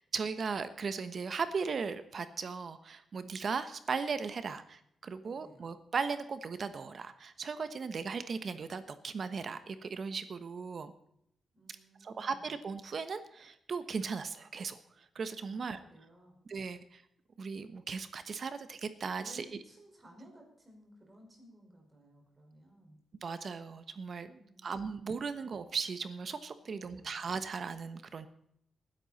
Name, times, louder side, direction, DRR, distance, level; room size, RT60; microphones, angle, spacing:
voice 1, 0.1-10.9 12.0-14.8 15.1-15.8 16.5-17.0 17.4-19.6 23.2-28.3, right 5 dB, 50° right, 11 dB, 1.1 m, -37 dB
voice 2, 5.2-5.7 11.5-12.6 15.5-16.4 19.1-23.0 24.3-24.7 26.6-27.2, right 1 dB, 20° right, 0 dB, 5.2 m, -58 dB
20.0 x 11.0 x 4.2 m, 0.72 s
wide cardioid pair, 125°, 0 cm